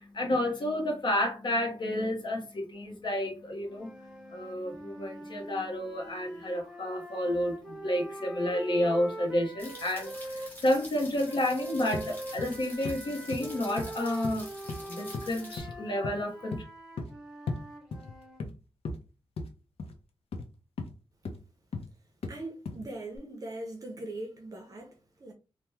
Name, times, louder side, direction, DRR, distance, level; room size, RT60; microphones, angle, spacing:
voice 1, 0.0-14.5 14.9-16.6, left 1 dB, 50° left, 0.8 m, -30 dB
sound 1, 3.6-10.5 11.2-18.4, right 1 dB, 5° right, 0.8 m, -43 dB
sound 2, 9.6-15.6, left 1 dB, 20° left, 1.1 m, -47 dB
sound 3, 11.9-12.1 12.4-12.6 12.8-13.0 13.3-13.5 13.8-13.9 14.2-14.8 15.1-15.3 15.6-15.8 16.0-16.2 16.5-16.6 17.0-17.1 17.5-17.6 17.9-18.5 18.8-19.0 19.4-19.5 19.8-20.0 20.3-20.5 20.8-20.9 21.2-21.4 21.7-21.9 22.2-22.4 22.7-22.9 23.2-23.3, left 3 dB, 85° left, 0.5 m, -36 dB
voice 2, 22.3-25.3, right 2 dB, 35° right, 0.5 m, -41 dB
2.9 x 2.1 x 3.3 m
wide cardioid pair, 155°, 10 cm